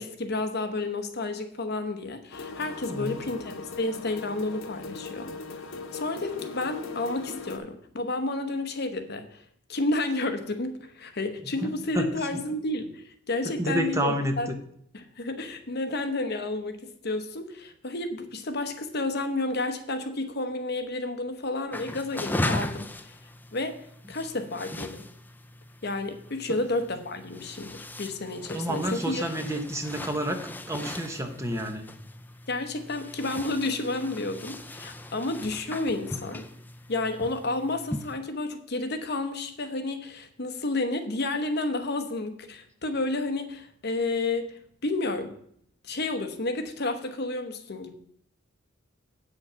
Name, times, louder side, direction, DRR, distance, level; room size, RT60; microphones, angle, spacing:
voice 1, 0.0-5.3 5.9-9.4 9.7-14.5 14.9-23.1 23.5-23.8 24.1-25.1 25.8-29.2 32.5-36.5 36.9-45.3 45.8-47.9, left 2 dB, 55° left, 8 dB, 1.0 m, -31 dB
sound 1, 2.3-7.6, left 4 dB, 85° left, 1.0 m, -39 dB
voice 2, 11.6-12.1 13.6-14.6 28.5-31.8, equal, 15° right, 5 dB, 1.0 m, -29 dB
sound 2, 21.7-38.2, left 1 dB, 10° left, 0.5 m, -38 dB
8.5 x 6.4 x 5.6 m, 0.67 s
head